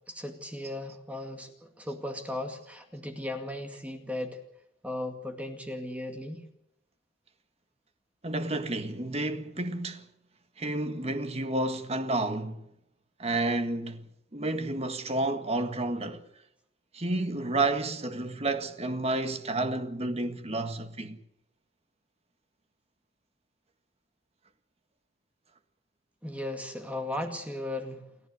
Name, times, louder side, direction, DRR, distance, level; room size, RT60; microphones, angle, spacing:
voice 1, 0.1-4.4 4.8-6.4 26.2-28.0, left 1 dB, 5° right, 2.2 m, -36 dB
voice 2, 8.2-10.1 10.6-12.6 13.2-16.2 16.9-21.2, right 2 dB, 30° right, 1.7 m, -30 dB
29.5 x 12.0 x 9.5 m
head